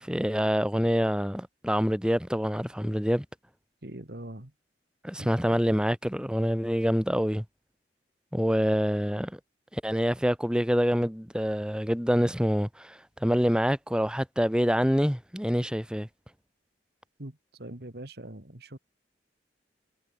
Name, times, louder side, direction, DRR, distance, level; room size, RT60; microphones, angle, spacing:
voice 1, 0.0-3.2 5.0-7.4 8.3-9.3 9.7-16.1, equal, 5° right, 2.6 m, -26 dB
voice 2, 3.8-4.5 5.2-5.3 17.2-18.8, right 1 dB, 60° right, 2.3 m, -42 dB
head